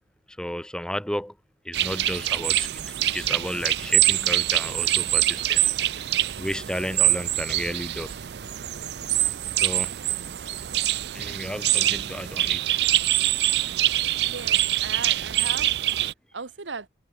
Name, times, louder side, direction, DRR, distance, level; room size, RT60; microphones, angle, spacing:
voice 1, 0.4-1.3 1.6-5.6 6.4-8.2 9.6-9.9 11.1-12.6, equal, 5° left, 1.0 m, -33 dB
sound 1, 1.7-16.1, right 14 dB, 65° right, 0.5 m, -24 dB
voice 2, 14.2-15.7 16.3-16.9, right 4 dB, 85° right, 1.3 m, -36 dB
head